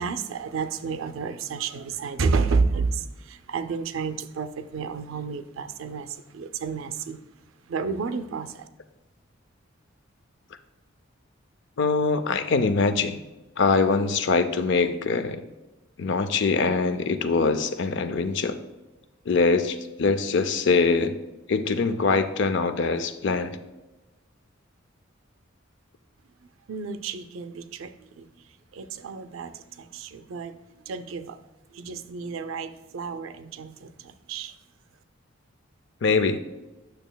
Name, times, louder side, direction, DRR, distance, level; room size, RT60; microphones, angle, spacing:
voice 1, 0.0-7.2 7.7-8.7 26.7-28.3 28.7-31.4 31.7-34.6, right 4 dB, 75° right, 11 dB, 0.4 m, -31 dB
voice 2, 11.8-13.2 13.6-15.4 16.0-18.6 19.3-21.1 21.5-23.6 36.0-36.4, left 4 dB, 60° left, 11 dB, 0.5 m, -23 dB
9.1 x 6.5 x 2.2 m, 1.1 s
head